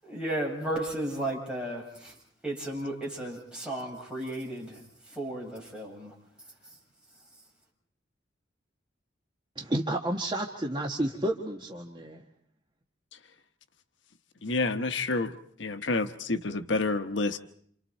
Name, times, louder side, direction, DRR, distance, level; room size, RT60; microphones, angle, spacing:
voice 1, 0.0-2.1 2.4-6.1, right 1 dB, 5° right, -4 dB, 7.5 m, -34 dB
voice 2, 9.6-12.2, right 1 dB, 25° right, 1 dB, 1.6 m, -31 dB
voice 3, 14.4-15.3 15.6-17.4, left 3 dB, 75° left, 9 dB, 1.1 m, -28 dB
28.5 x 28.5 x 4.4 m, 0.62 s
head